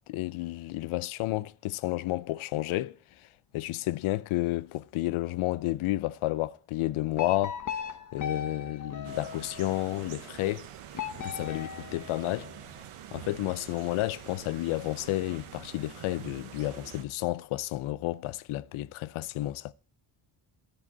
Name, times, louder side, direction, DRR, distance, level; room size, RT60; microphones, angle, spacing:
voice 1, 0.1-3.0 3.5-7.9 8.1-10.7 11.2-12.5 13.1-19.7, left 16 dB, 80° left, 0.6 m, -31 dB
sound 1, 7.2-9.9 10.9-12.7, left 7 dB, 40° left, 1.0 m, -38 dB
sound 2, 9.0-17.0, right 10 dB, 80° right, 1.1 m, -46 dB
12.5 x 4.9 x 8.2 m
cardioid pair, 155°, 49 cm